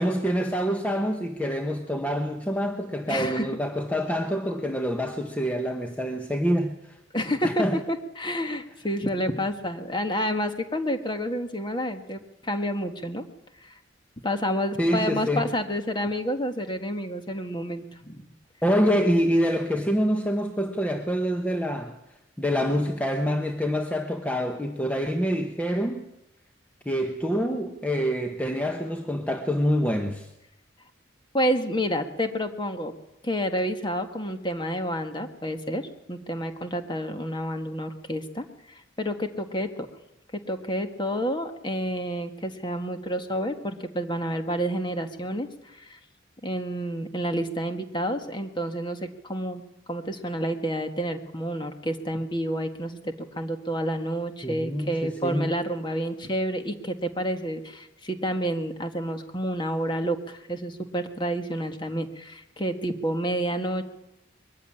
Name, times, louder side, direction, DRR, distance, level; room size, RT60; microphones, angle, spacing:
voice 1, 0.0-6.9 7.4-7.8 14.8-15.5 18.6-22.0 22.4-26.1 26.9-30.3 54.4-55.5, equal, 10° left, 4 dB, 1.0 m, -26 dB
voice 2, 3.1-3.5 7.1-13.3 13.6-13.8 14.2-18.2 31.3-32.9 33.2-39.9 40.3-46.0 46.4-49.6 49.9-63.8, equal, 25° left, 7 dB, 1.6 m, -29 dB
22.0 x 14.5 x 10.0 m, 0.91 s
head